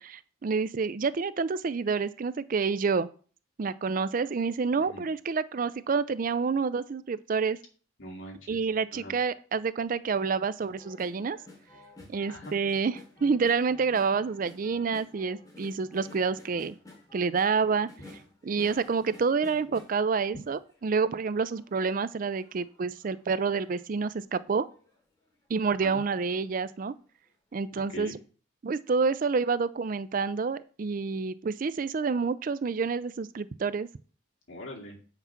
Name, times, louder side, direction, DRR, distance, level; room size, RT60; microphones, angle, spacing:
voice 1, 0.0-3.1 3.6-7.6 8.5-11.4 12.1-16.8 17.1-24.7 25.5-26.9 27.5-28.2 28.6-33.9, right 5 dB, 45° right, 15 dB, 0.4 m, -28 dB
voice 2, 8.0-8.6 8.9-9.1 12.3-12.6 25.8-26.0 27.8-28.1 34.5-35.0, equal, 85° left, -1 dB, 2.4 m, -42 dB
sound 1, 10.6-20.9 21.3-23.8 24.3-24.4 24.7-25.0 25.5-26.5 26.8-26.9, left 2 dB, 20° left, 2.7 m, -52 dB
8.4 x 5.9 x 5.8 m, 0.40 s
head